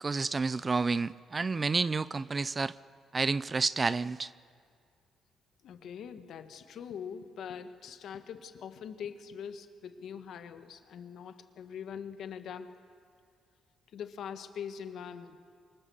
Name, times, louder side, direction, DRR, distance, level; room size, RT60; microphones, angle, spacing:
voice 1, 0.0-2.7 3.1-4.3, right 4 dB, 30° right, 0.5 m, -30 dB
voice 2, 5.6-12.7 13.9-15.4, left 7 dB, 70° left, 1.6 m, -43 dB
27.0 x 24.5 x 7.2 m
cardioid pair, 90°, 0 cm